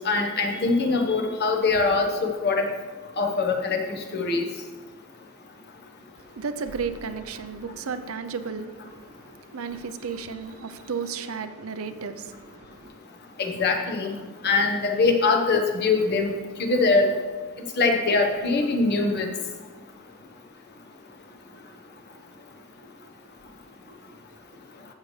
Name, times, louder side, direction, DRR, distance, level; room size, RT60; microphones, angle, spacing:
voice 1, 0.0-2.1 2.4-2.7 3.2-3.8 4.1-4.5 13.4-14.2 14.4-16.3 16.6-17.1 17.8-19.3, left 3 dB, 50° left, 1.1 m, -22 dB
voice 2, 6.2-12.9, right 5 dB, 85° right, 0.6 m, -34 dB
15.0 x 6.5 x 3.3 m
head